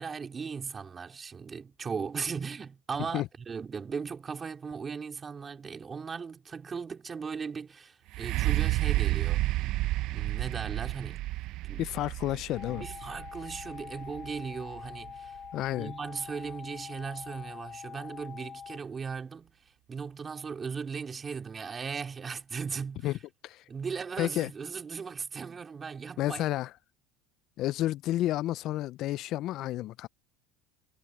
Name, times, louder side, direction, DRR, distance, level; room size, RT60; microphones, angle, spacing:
voice 1, 0.0-9.5 10.1-11.2 11.6-11.9 12.7-15.4 15.7-23.2 23.7-26.4, right 5 dB, 25° right, 3.0 m, -38 dB
sound 1, 8.1-15.9 16.5-16.6, right 17 dB, 60° right, 0.6 m, -31 dB
voice 2, 11.8-12.8 15.5-15.9 23.0-23.2 23.4-23.6 24.2-24.5 26.2-26.7 27.6-30.1, left 14 dB, 55° left, 0.6 m, -31 dB
sound 2, 12.5-18.8, left 7 dB, 30° left, 5.8 m, -45 dB
supercardioid pair, 100°, 0 cm